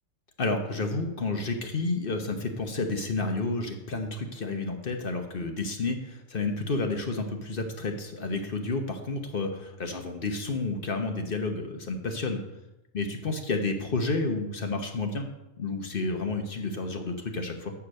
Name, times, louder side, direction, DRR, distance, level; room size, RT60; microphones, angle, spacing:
voice 1, 0.4-12.4 12.9-15.3 15.6-17.7, left 3 dB, 45° left, 4 dB, 1.0 m, -30 dB
8.4 x 4.8 x 6.4 m, 0.95 s
omnidirectional pair, 1.4 m